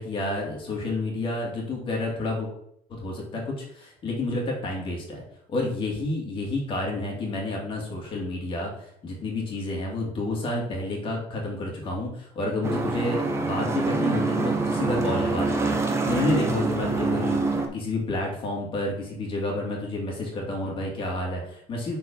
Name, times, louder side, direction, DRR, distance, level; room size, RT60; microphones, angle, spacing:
voice 1, 0.0-2.5 2.9-5.2 5.5-15.8 16.1-22.0, left 2 dB, 35° left, -1 dB, 2.1 m, -30 dB
sound 1, 12.6-17.7, right 3 dB, 15° right, 0.8 m, -25 dB
6.2 x 4.7 x 5.3 m, 0.70 s
cardioid pair, 175°, 15 cm